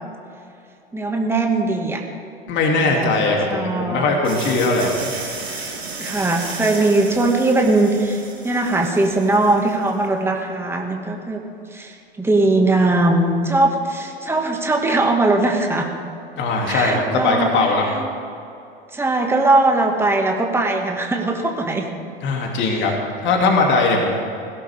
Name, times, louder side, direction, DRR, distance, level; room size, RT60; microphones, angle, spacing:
voice 1, 0.9-2.0 2.8-4.0 6.0-11.4 11.7-15.9 16.7-18.1 18.9-21.9 22.6-23.0, right 2 dB, 10° right, 1 dB, 2.1 m, -20 dB
voice 2, 2.5-5.1 16.4-17.9 22.2-24.2, left 3 dB, 40° left, 0 dB, 3.0 m, -20 dB
sound 1, 4.2-9.9, right 3 dB, 90° right, 2.9 m, -33 dB
21.0 x 16.5 x 3.7 m, 2.6 s
figure-of-eight pair, 90°, 30 cm